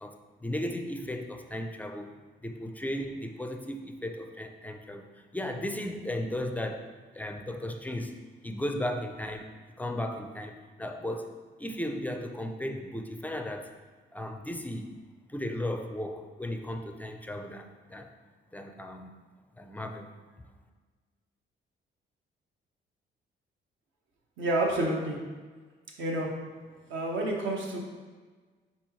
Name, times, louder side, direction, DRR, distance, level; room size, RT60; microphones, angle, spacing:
voice 1, 0.0-2.2 2.4-5.1 5.3-8.2 8.4-9.5 9.8-13.7 14.1-14.9 15.3-18.1 18.5-19.1 19.6-20.1, left 1 dB, 10° left, 5 dB, 0.4 m, -35 dB
voice 2, 24.4-25.2 26.0-26.3 26.9-27.8, right 1 dB, 75° right, -1 dB, 1.0 m, -29 dB
4.3 x 4.0 x 3.1 m, 1.4 s
cardioid pair, 90°, 20 cm